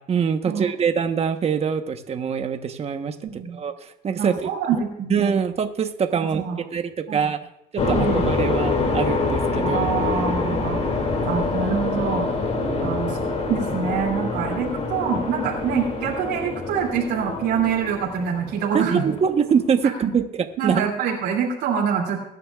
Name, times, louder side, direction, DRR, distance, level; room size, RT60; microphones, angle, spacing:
voice 1, 0.1-3.1 3.5-4.5 5.1-6.4 6.7-7.4 7.7-9.9 12.6-13.0 18.7-20.2 20.6-20.9, right 7 dB, 40° right, 7 dB, 1.1 m, -24 dB
voice 2, 3.2-3.6 4.2-5.2 6.2-6.6 7.1-7.3 7.9-8.3 9.6-10.8 11.2-12.3 12.8-13.2 13.5-19.0 20.0-20.1 20.6-22.2, right 7 dB, 85° right, -2 dB, 2.7 m, -25 dB
sound 1, 7.8-19.2, left 3 dB, 40° left, 2.6 m, -25 dB
21.5 x 9.9 x 2.4 m, 0.83 s
cardioid pair, 110°, 17 cm